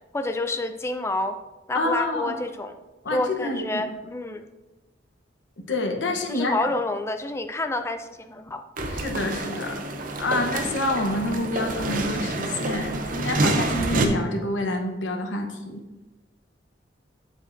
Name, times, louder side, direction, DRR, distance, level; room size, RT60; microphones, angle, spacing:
voice 1, 0.1-1.4 1.7-2.8 3.1-4.5 6.3-8.6, left 2 dB, 15° left, 8 dB, 0.4 m, -28 dB
voice 2, 1.7-2.3 3.0-3.8 5.6-6.7 8.9-15.8, left 2 dB, 90° left, 4 dB, 1.0 m, -28 dB
sound 1, 8.8-14.1, right 2 dB, 45° right, 0.6 m, -27 dB
7.3 x 7.2 x 2.6 m, 1.1 s
head